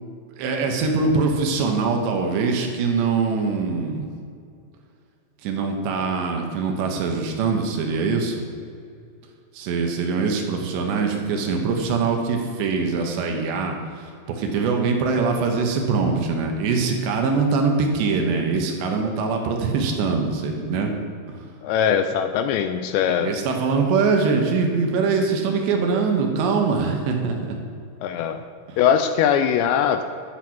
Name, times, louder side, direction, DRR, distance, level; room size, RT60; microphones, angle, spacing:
voice 1, 0.4-4.1 5.4-8.4 9.5-20.9 21.3-21.4 23.2-27.6 28.7-28.8, right 4 dB, 75° right, 2 dB, 3.3 m, -23 dB
voice 2, 21.6-23.4 28.0-28.4 28.8-30.0, left 8 dB, 80° left, 9 dB, 2.6 m, -21 dB
12.0 x 8.2 x 6.0 m, 2.4 s
omnidirectional pair, 5.4 m